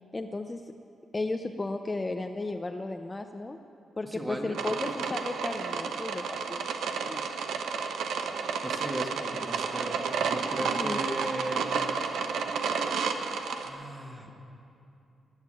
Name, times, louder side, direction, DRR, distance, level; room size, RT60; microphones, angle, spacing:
voice 1, 0.1-0.7 1.1-3.6 4.0-7.3 10.6-11.0, left 2 dB, 20° left, 6 dB, 0.5 m, -34 dB
voice 2, 4.0-4.6 8.6-10.0 10.3-11.7 13.6-14.3, right 1 dB, 20° right, 2 dB, 1.8 m, -37 dB
sound 1, 4.5-13.7, right 5 dB, 90° right, 0.9 m, -31 dB
19.0 x 7.3 x 8.8 m, 2.7 s
cardioid pair, 100°, 0 cm